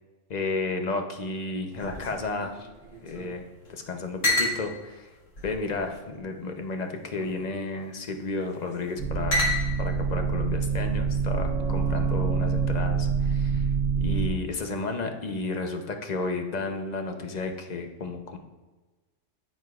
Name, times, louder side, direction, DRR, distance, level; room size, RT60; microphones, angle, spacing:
voice 1, 0.3-2.7 3.0-3.4 3.7-5.1 5.4-9.5 9.8-13.7 14.0-18.4, left 3 dB, 40° left, 5 dB, 0.7 m, -32 dB
sound 1, 1.7-3.4 3.6-3.7 4.2-4.6 5.3-6.2 7.0-7.4 8.4-8.8 9.3-10.0, left 1 dB, 70° left, 2.0 m, -30 dB
sound 2, 9.0-14.3, right 5 dB, 85° right, 1.2 m, -26 dB
9.7 x 9.4 x 2.4 m, 1.2 s
omnidirectional pair, 1.4 m